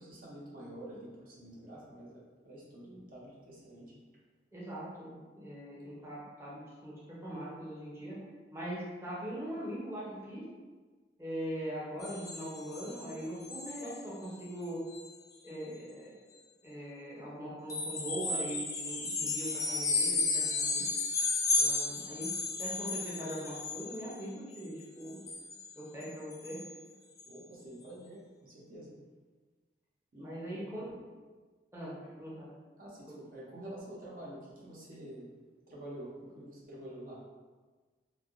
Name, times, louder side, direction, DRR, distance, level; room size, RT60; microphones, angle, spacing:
voice 1, 0.0-3.9 27.3-28.9 30.1-30.7 32.8-35.3 35.7-37.2, right 1 dB, 50° right, -5 dB, 0.6 m, -48 dB
voice 2, 4.5-8.2 8.5-10.4 11.2-14.8 15.4-16.2 16.6-20.8 21.6-22.3 22.6-25.2 25.8-26.6 30.2-31.0 31.7-31.9 32.2-32.5 33.1-33.2, equal, 15° right, -8 dB, 0.6 m, -41 dB
sound 1, 12.0-13.1 13.4-14.0 14.3-14.5 14.9-15.1 17.7-24.2 24.5-25.7 26.0-26.1 26.3-26.7 27.2-27.3, left 3 dB, 20° left, 0.3 m, -33 dB
3.2 x 2.6 x 2.5 m, 1.4 s
head